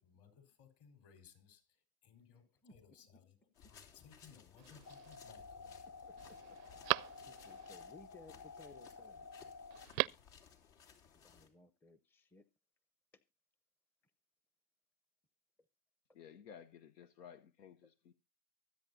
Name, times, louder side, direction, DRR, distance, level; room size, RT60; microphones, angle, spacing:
voice 1, 0.0-6.1 6.4-6.5, left 7 dB, 55° left, 4.4 m, -63 dB
sound 1, 3.5-11.5, left 7 dB, 75° left, 3.0 m, -61 dB
Telephone, 4.6-5.2 5.7-5.8 6.2-7.7 9.7-10.4 10.6-10.7, right 25 dB, 65° right, 0.5 m, -39 dB
sound 2, 4.9-9.9, left 4 dB, 35° left, 0.8 m, -53 dB
voice 2, 6.0-9.3 11.2-12.5 13.1-13.2 17.8-17.9, left 3 dB, 5° left, 0.5 m, -61 dB
voice 3, 16.1-18.1, left 8 dB, 90° left, 0.9 m, -56 dB
24.0 x 8.3 x 2.6 m
hypercardioid pair, 95°, 47 cm